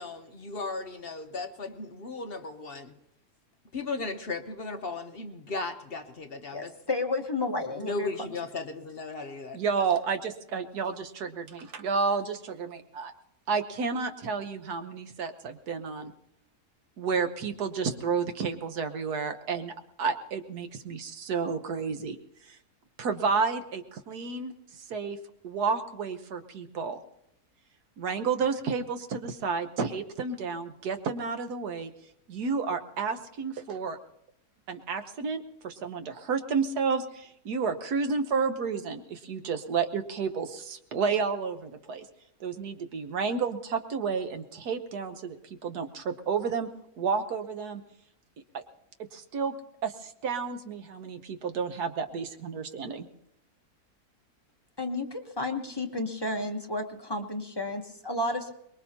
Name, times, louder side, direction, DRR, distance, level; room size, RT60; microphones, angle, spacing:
voice 1, 0.0-2.9 3.7-6.8 7.8-9.6, left 3 dB, 45° left, 6 dB, 1.0 m, -36 dB
voice 2, 6.5-8.4 54.8-58.5, left 2 dB, 20° left, 3 dB, 1.0 m, -32 dB
voice 3, 9.5-13.1 13.5-16.1 17.0-22.2 22.5-22.6 23.0-25.2 25.4-27.0 28.0-31.9 32.3-34.0 34.7-42.0 42.4-45.4 45.6-46.7 47.0-47.8 48.5-48.6 49.1-49.5 49.8-53.1, right 5 dB, 80° right, 8 dB, 1.6 m, -31 dB
23.5 x 21.0 x 2.9 m, 0.77 s
omnidirectional pair, 1.6 m